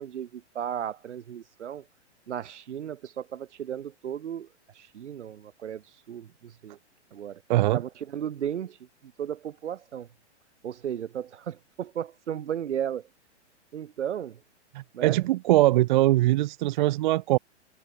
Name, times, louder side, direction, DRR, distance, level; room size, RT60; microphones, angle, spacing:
voice 1, 0.0-1.9 2.3-6.8 7.1-7.4 7.7-10.1 10.6-13.1 13.7-14.4 14.9-15.3, right 9 dB, 75° right, 4.3 m, -35 dB
voice 2, 14.7-17.4, right 16 dB, 40° right, 0.7 m, -22 dB
hypercardioid pair, 150°, 35 cm